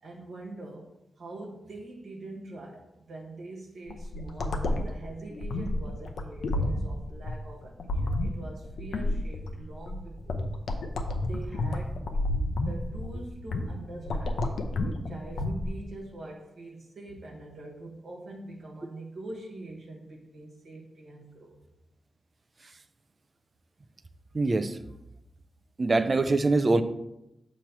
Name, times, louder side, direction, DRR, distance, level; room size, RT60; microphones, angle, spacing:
voice 1, 0.0-10.5 11.2-12.0 12.6-21.6, right 2 dB, 70° right, -2 dB, 1.2 m, -44 dB
sound 1, 3.9-15.8, left 1 dB, 85° left, 0.6 m, -30 dB
voice 2, 24.3-24.8 25.8-26.8, right 3 dB, 30° right, 11 dB, 0.4 m, -23 dB
6.8 x 3.1 x 5.9 m, 0.89 s
wide cardioid pair, 140°, 0 cm